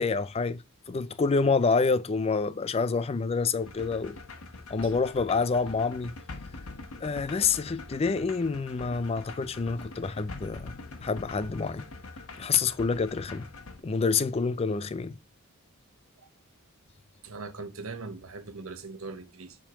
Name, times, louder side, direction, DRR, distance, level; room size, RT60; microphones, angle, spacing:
voice 1, 0.0-4.2 4.7-6.1 7.0-10.7 11.0-11.9 12.4-13.5 13.8-15.2, left 4 dB, 30° left, 0.4 m, -27 dB
sound 1, 3.6-13.8, left 3 dB, 80° left, 1.1 m, -44 dB
voice 2, 17.2-19.6, right 3 dB, 75° right, 1.1 m, -40 dB
7.3 x 3.7 x 4.9 m
head